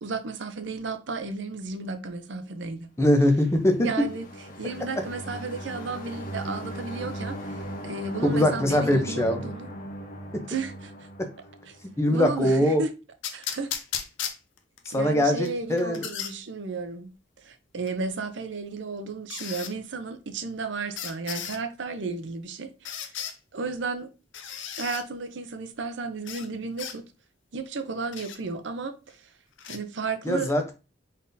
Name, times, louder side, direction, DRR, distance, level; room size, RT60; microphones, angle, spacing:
voice 1, 0.0-2.9 3.8-4.3 4.6-9.7 10.5-11.1 11.7-11.8 12.1-12.9 13.3-13.7 14.9-17.1 17.4-23.1 23.5-24.1 24.8-27.0 27.5-29.2 29.7-30.5, right 4 dB, 70° right, 0.6 m, -33 dB
voice 2, 3.0-3.9 8.2-9.4 10.3-10.4 11.2-11.3 12.0-12.8 14.9-16.1 30.2-30.7, left 1 dB, 15° left, 0.6 m, -22 dB
sound 1, 3.4-12.1, right 1 dB, 50° left, 0.8 m, -38 dB
sound 2, 13.2-14.9 15.5-16.3 17.9-18.0 19.3-19.7 21.0-21.6 22.9-23.4 24.3-25.0 26.3-26.5 26.8-27.0 28.1-28.4 29.6-29.8, left 8 dB, 75° left, 0.6 m, -35 dB
4.0 x 3.7 x 2.6 m
head